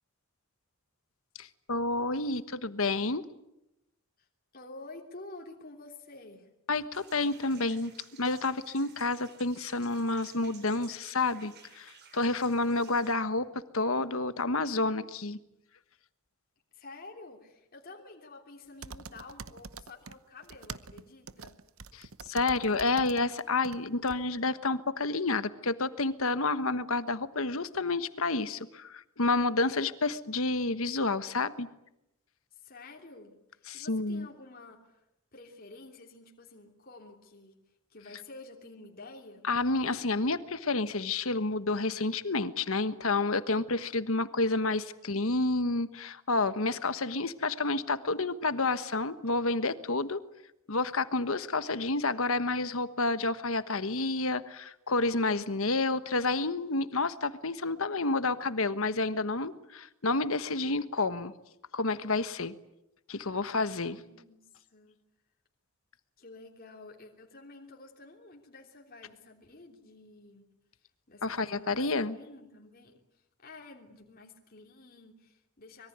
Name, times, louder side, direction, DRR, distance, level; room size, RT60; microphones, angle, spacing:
voice 1, 1.4-3.2 6.7-13.5 13.7-15.4 21.9-31.7 33.7-34.3 39.5-50.2 50.7-61.3 61.7-62.5 63.1-64.0 71.2-72.2, left 3 dB, 65° left, 13 dB, 1.3 m, -29 dB
voice 2, 4.5-6.5 16.7-21.6 32.5-35.0 35.3-37.6 37.9-39.5 63.6-65.0 66.2-70.5 71.1-71.9 72.1-75.9, left 3 dB, 40° left, 1 dB, 3.2 m, -50 dB
sound 1, 6.9-13.1, right 7 dB, 45° right, 4.0 m, -56 dB
sound 2, 18.8-20.2 20.4-23.8 24.1-24.2, right 5 dB, 65° right, 1.0 m, -44 dB
25.5 x 22.5 x 9.5 m, 0.88 s
head